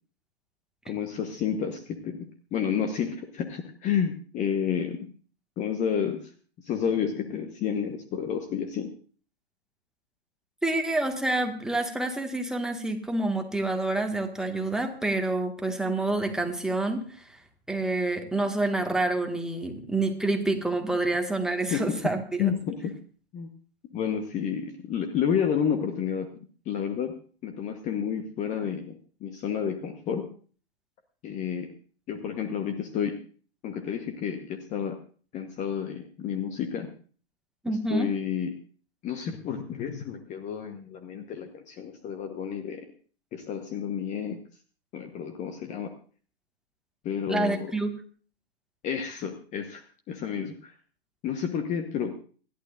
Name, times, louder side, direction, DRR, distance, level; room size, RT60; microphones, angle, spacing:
voice 1, 0.8-5.1 5.6-6.3 6.6-8.9 21.7-22.0 22.4-22.9 23.3-23.5 23.9-26.3 26.6-27.2 27.4-30.3 31.2-31.7 32.1-33.2 33.6-35.0 35.3-36.9 37.7-38.5 39.0-42.9 43.3-44.4 44.9-45.9 47.0-47.7 48.8-50.7 51.2-52.2, left 7 dB, 25° left, 6 dB, 1.1 m, -30 dB
voice 2, 10.6-17.4 17.7-22.5 37.6-38.1 47.3-47.9, right 2 dB, ahead, 3 dB, 1.7 m, -28 dB
27.5 x 11.5 x 2.5 m, 0.43 s
figure-of-eight pair, 115°, 31 cm